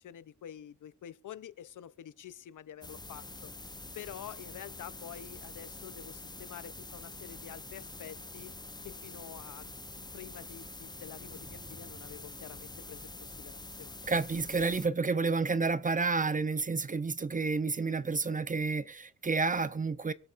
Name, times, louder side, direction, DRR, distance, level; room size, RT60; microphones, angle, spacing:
voice 1, 0.0-3.5 3.9-8.6 8.8-9.7 10.1-14.0, left 10 dB, 70° left, 0.7 m, -48 dB
sound 1, 2.8-14.9, left 2 dB, 15° left, 0.8 m, -46 dB
sound 2, 11.3-13.2, equal, 5° right, 1.3 m, -56 dB
voice 2, 14.1-20.1, right 4 dB, 25° right, 0.6 m, -30 dB
24.0 x 8.2 x 2.5 m
cardioid pair, 110°, 33 cm